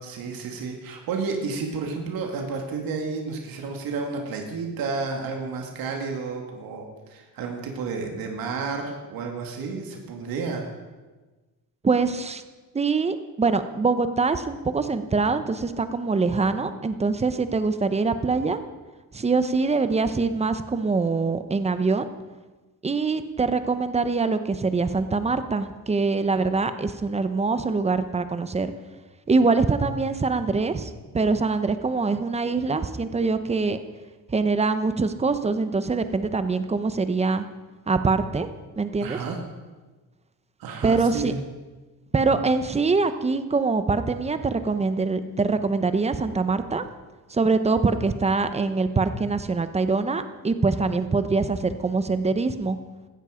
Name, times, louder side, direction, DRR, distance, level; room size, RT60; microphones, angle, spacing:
voice 1, 0.0-10.7 39.0-39.4 40.6-41.4, right 4 dB, 85° right, 2 dB, 2.3 m, -31 dB
voice 2, 11.8-12.4 12.7-18.6 19.1-22.1 22.8-28.7 29.3-33.8 34.3-37.5 37.9-38.5 38.8-39.2 40.8-41.3 42.1-46.8 47.3-52.8, right 4 dB, 20° right, 10 dB, 0.9 m, -24 dB
17.0 x 13.0 x 5.1 m, 1.2 s
cardioid pair, 130°, 34 cm